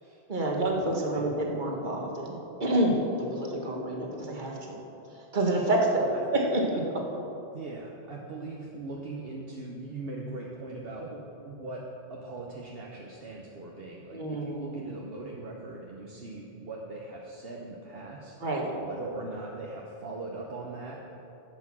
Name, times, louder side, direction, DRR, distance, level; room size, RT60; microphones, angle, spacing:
voice 1, 0.3-3.0 3.3-4.8 5.3-6.8 14.1-14.7 18.4-18.7, right 1 dB, 50° right, 0 dB, 1.7 m, -28 dB
voice 2, 7.5-11.1 11.5-11.8 12.1-18.4 18.6-21.1, right 2 dB, 65° right, -2 dB, 1.2 m, -40 dB
11.5 x 8.2 x 6.1 m, 2.9 s
omnidirectional pair, 1.1 m